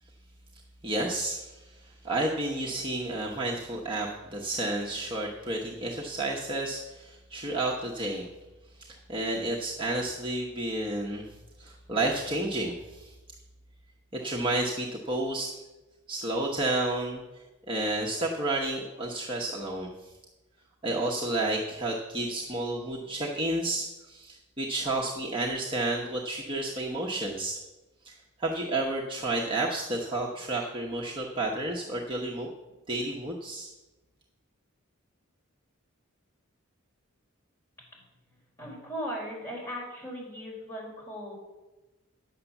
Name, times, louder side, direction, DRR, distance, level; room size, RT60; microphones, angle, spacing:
voice 1, 0.8-8.3 8.8-13.1 14.1-15.6 16.1-20.1 20.8-27.6 28.0-28.1 28.4-32.5 32.9-33.7, right 2 dB, 25° right, -3 dB, 1.0 m, -31 dB
voice 2, 38.6-41.3, equal, 15° left, -5 dB, 4.5 m, -38 dB
9.9 x 6.7 x 7.0 m, 1.1 s
head